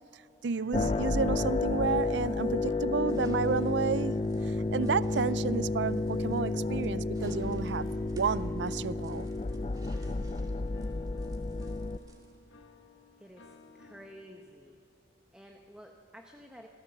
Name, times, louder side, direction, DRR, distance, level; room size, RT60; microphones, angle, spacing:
voice 1, 0.4-4.2 4.7-9.3, right 5 dB, 70° right, 0.5 m, -31 dB
sound 1, 0.5-6.3 7.4-14.8, left 4 dB, 85° left, 1.3 m, -55 dB
sound 2, 0.7-12.0, left 3 dB, 30° left, 0.4 m, -31 dB
sound 3, 3.1-12.4, right 1 dB, 20° right, 2.4 m, -59 dB
voice 2, 13.2-14.8 15.3-16.7, equal, 5° right, 1.0 m, -51 dB
27.0 x 16.5 x 7.5 m
head